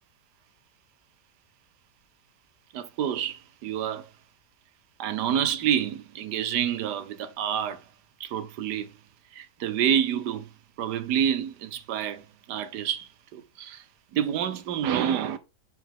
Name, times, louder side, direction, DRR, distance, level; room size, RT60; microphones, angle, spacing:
voice 1, 2.7-4.1 5.0-7.8 8.2-8.9 9.3-10.5 10.8-13.8 14.1-15.4, right 9 dB, 80° right, 1.3 m, -28 dB
7.7 x 4.9 x 3.7 m
omnidirectional pair, 1.8 m